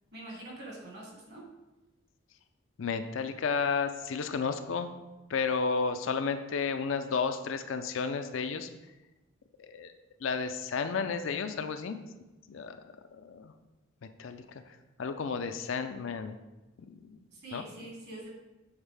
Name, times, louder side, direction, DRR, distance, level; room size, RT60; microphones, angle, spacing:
voice 1, 0.1-1.4 17.3-18.3, right 1 dB, 55° right, -3 dB, 1.8 m, -45 dB
voice 2, 2.8-4.9 5.3-8.7 9.6-9.9 10.2-12.0 12.5-12.8 13.1-13.5 14.0-14.6 15.0-16.3 16.9-17.2 17.5-17.6, left 5 dB, 65° left, 8 dB, 0.4 m, -32 dB
7.2 x 4.0 x 3.4 m, 1.0 s
head